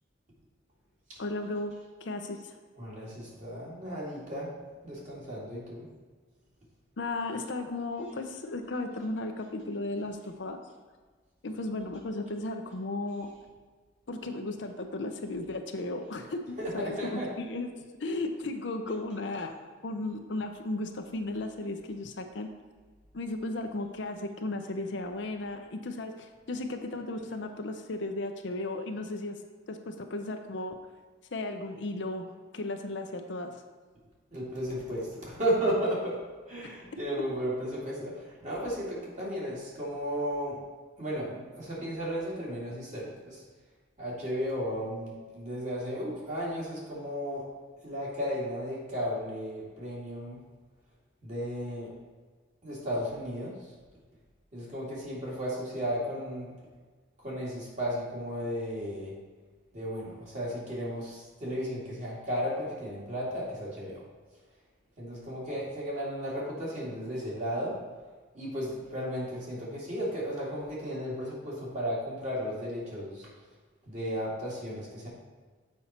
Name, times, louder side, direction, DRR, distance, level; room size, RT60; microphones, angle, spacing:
voice 1, 1.2-2.5 7.0-10.6 11.4-13.3 14.1-17.7 18.0-19.5 19.8-22.5 23.1-29.4 29.7-30.8 31.3-32.3 32.5-33.5 36.9-37.0, left 2 dB, 65° left, 5 dB, 0.6 m, -35 dB
voice 2, 2.8-4.5 4.8-5.9 16.6-17.3 34.3-36.2 36.5-40.6 41.0-43.4 44.0-47.4 47.8-50.4 51.2-51.9 52.6-53.6 54.5-56.5 57.2-59.1 59.7-64.0 65.0-67.7 68.3-73.3 73.8-75.1, equal, 35° right, -6 dB, 2.3 m, -34 dB
7.3 x 5.4 x 4.3 m, 1.4 s
head